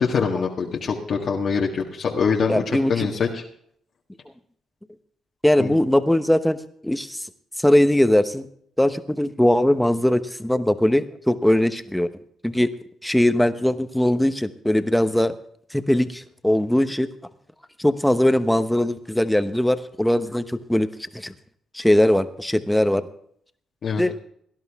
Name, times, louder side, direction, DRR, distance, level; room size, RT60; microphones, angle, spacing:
voice 1, 0.0-3.4 5.6-5.7 23.8-24.1, left 5 dB, 60° left, -1 dB, 1.7 m, -24 dB
voice 2, 2.5-3.1 5.4-6.6 6.8-7.3 7.6-8.5 8.8-12.1 12.4-12.7 13.0-15.3 15.7-17.1 17.8-20.9 21.1-21.3 21.7-23.0 24.0-24.1, left 1 dB, 5° left, 10 dB, 1.0 m, -20 dB
18.0 x 11.0 x 3.6 m, 0.65 s
cardioid pair, 75°, 0 cm